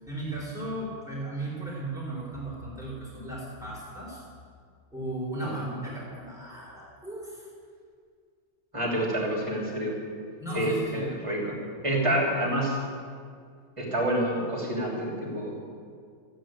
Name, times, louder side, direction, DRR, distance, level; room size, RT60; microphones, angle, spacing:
voice 1, 0.0-4.2 4.9-7.5 10.4-11.1 11.7-11.9, right 2 dB, ahead, -5 dB, 3.8 m, -36 dB
voice 2, 5.4-5.7 8.7-9.9 10.5-11.5 11.8-12.8 13.8-15.6, right 1 dB, 25° right, -2 dB, 3.1 m, -28 dB
14.0 x 8.4 x 8.8 m, 2.1 s
omnidirectional pair, 1.4 m